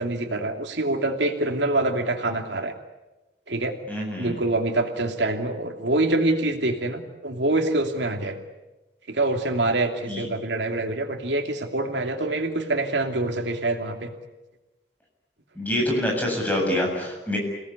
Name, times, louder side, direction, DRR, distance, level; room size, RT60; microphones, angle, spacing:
voice 1, 0.0-2.7 3.5-3.7 4.2-8.4 9.1-14.1, right 2 dB, 85° right, 4 dB, 2.8 m, -25 dB
voice 2, 3.9-4.4 10.1-10.2 15.6-17.4, left 1 dB, 10° left, -1 dB, 7.5 m, -26 dB
28.5 x 18.5 x 9.9 m, 1.1 s
head